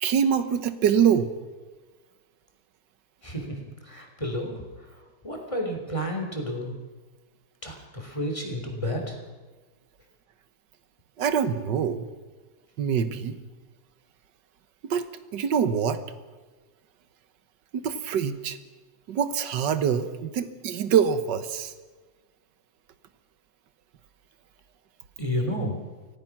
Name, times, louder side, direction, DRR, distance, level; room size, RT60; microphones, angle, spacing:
voice 1, 0.0-1.3 11.2-12.1 12.8-13.4 14.9-15.0 15.3-16.0 17.7-18.6 19.1-21.7, right 8 dB, 70° right, 11 dB, 1.8 m, -24 dB
voice 2, 3.2-4.6 5.2-6.7 7.6-9.2 25.2-25.8, equal, 15° left, 2 dB, 3.4 m, -31 dB
25.0 x 17.0 x 6.1 m, 1.3 s
omnidirectional pair, 2.0 m